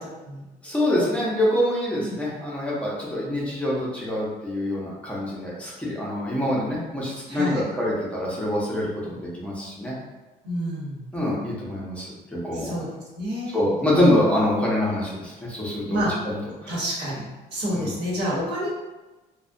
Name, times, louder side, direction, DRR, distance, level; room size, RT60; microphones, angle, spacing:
voice 1, 0.6-9.9 11.1-12.8 13.5-16.8 17.7-17.9, left 1 dB, 5° left, -6 dB, 0.6 m, -25 dB
voice 2, 7.3-7.7 10.4-11.1 12.5-12.9 13.2-13.6 15.9-16.1 16.7-18.7, equal, 75° right, -6 dB, 1.0 m, -28 dB
2.3 x 2.1 x 2.6 m, 1.1 s
cardioid pair, 110°, 17 cm